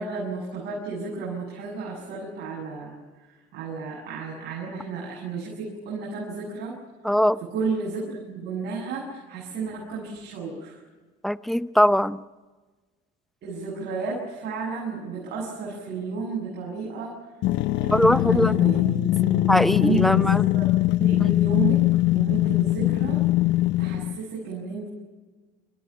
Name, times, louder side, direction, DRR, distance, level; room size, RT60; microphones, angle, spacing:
voice 1, 0.0-2.9 3.5-6.8 7.5-10.8 13.4-17.1 17.8-19.5 19.8-20.7 21.0-21.8 22.1-23.2 23.8-24.9, right 4 dB, 65° right, -4 dB, 7.7 m, -32 dB
voice 2, 7.0-7.4 11.2-12.2 17.9-18.5 19.5-20.4 21.2-21.3, equal, ahead, 15 dB, 0.8 m, -21 dB
sound 1, 17.4-24.2, left 17 dB, 75° left, 0.7 m, -21 dB
28.0 x 14.0 x 9.6 m, 1.3 s
supercardioid pair, 80°, 19 cm